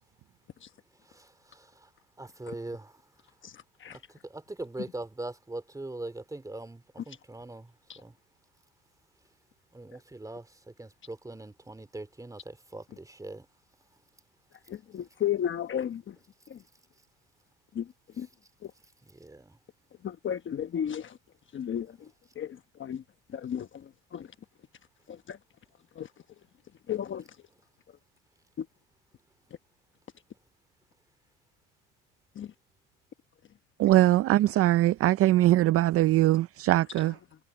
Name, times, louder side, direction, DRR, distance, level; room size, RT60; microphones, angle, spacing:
voice 1, 1.0-1.9 2.2-3.0 3.9-7.7 8.0-8.1 9.7-13.5 19.1-19.6, right 2 dB, 10° right, 3.0 m, -42 dB
voice 2, 3.4-4.0 7.9-8.0 14.7-16.2 16.5-16.6 17.7-17.9 18.2-18.3 18.6-18.7 20.0-21.2 21.5-22.1 22.3-23.0 23.3-24.3 25.1-25.4 25.9-26.1 26.9-27.2 28.6-28.7 32.3-32.5, left 9 dB, 35° left, 1.1 m, -34 dB
voice 3, 33.8-37.1, right 15 dB, 45° right, 0.4 m, -22 dB
cardioid pair, 115°, 32 cm